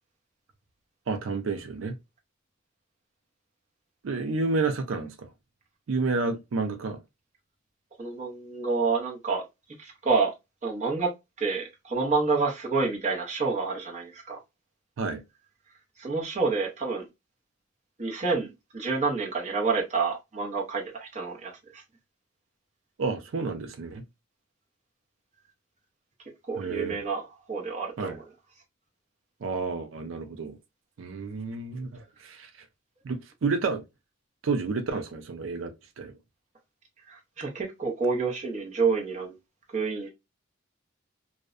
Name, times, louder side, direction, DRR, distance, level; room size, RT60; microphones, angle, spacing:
voice 1, 1.1-2.0 4.0-5.3 5.9-7.0 15.0-15.2 23.0-24.0 26.6-27.0 28.0-28.2 29.4-30.6 31.0-32.5 33.0-33.8 34.4-36.1, right 4 dB, 75° right, 0.4 m, -30 dB
voice 2, 8.0-9.4 9.8-10.3 10.6-11.1 11.4-14.4 16.0-17.0 18.0-18.5 18.7-21.8 26.5-27.2 27.5-28.2 37.1-39.4 39.7-40.1, right 4 dB, 35° right, 0.7 m, -28 dB
2.6 x 2.1 x 2.3 m
head